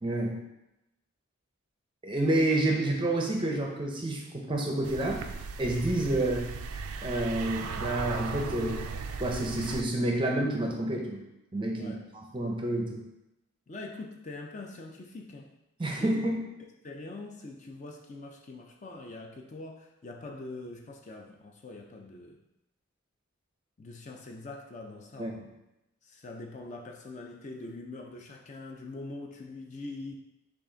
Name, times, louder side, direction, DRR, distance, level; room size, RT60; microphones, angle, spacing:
voice 1, 0.0-0.4 2.0-5.2 5.6-6.6 7.0-8.8 9.2-11.2 11.5-13.0 15.8-16.4 25.2-25.3, right 1 dB, 20° right, 1 dB, 0.5 m, -29 dB
sound 1, 4.8-9.8, right 5 dB, 80° right, 0.3 m, -37 dB
voice 2, 13.7-15.5 15.8-16.1 16.8-22.4 23.8-25.5 26.0-30.2, left 2 dB, 35° left, 1 dB, 0.4 m, -43 dB
5.7 x 2.4 x 3.8 m, 0.92 s
head